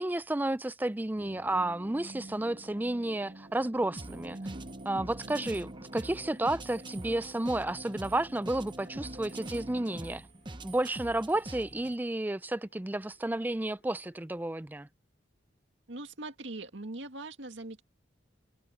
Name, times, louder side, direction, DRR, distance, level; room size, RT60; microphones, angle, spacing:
voice 1, 0.0-4.4 4.9-10.2 10.6-14.9, right 1 dB, 10° right, 0.4 m, -32 dB
sound 1, 1.2-10.1, right 1 dB, 40° right, 1.8 m, -47 dB
sound 2, 4.0-12.0, right 2 dB, 25° right, 0.9 m, -45 dB
voice 2, 5.2-5.6 15.9-17.8, right 2 dB, 75° right, 2.1 m, -42 dB
sound 3, 5.4-14.3, left 2 dB, 65° left, 7.3 m, -68 dB
head